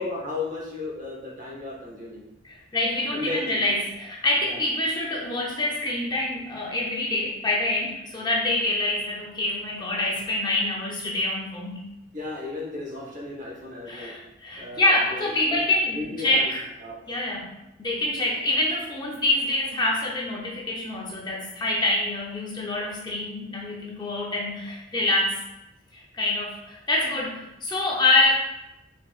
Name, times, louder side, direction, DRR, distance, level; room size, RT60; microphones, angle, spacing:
voice 1, 0.0-2.2 3.1-3.6 4.4-4.6 12.1-14.1 14.6-15.6 15.9-16.5 16.8-17.0, left 3 dB, 40° right, -3 dB, 1.0 m, -34 dB
voice 2, 2.4-11.8 13.9-16.6 17.1-17.5 17.8-25.4 25.9-28.5, left 2 dB, 20° left, -3 dB, 0.6 m, -26 dB
4.5 x 3.8 x 2.4 m, 0.89 s
head